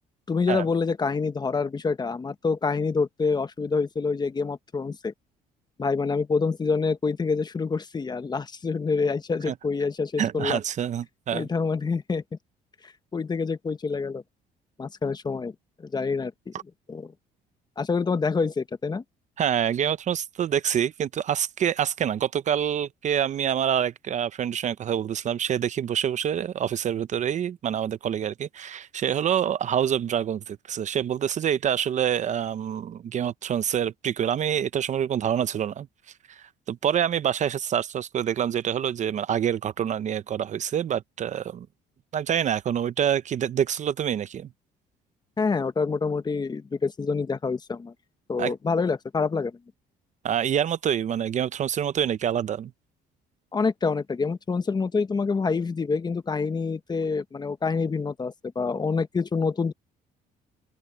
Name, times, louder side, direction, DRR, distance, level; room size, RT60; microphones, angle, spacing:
voice 1, 0.3-5.1 5.8-10.6 11.3-12.2 12.8-14.2 14.8-15.5 15.8-16.5 16.9-17.1 17.8-19.0 45.4-47.9 48.3-49.6 53.5-59.7, left 4 dB, 25° left, 1.2 m, -27 dB
voice 2, 10.2-11.5 19.4-35.9 36.3-41.7 42.1-44.5 48.4-48.5 50.2-52.7, right 9 dB, 45° right, 0.7 m, -26 dB
open air
cardioid pair, 110°, 17 cm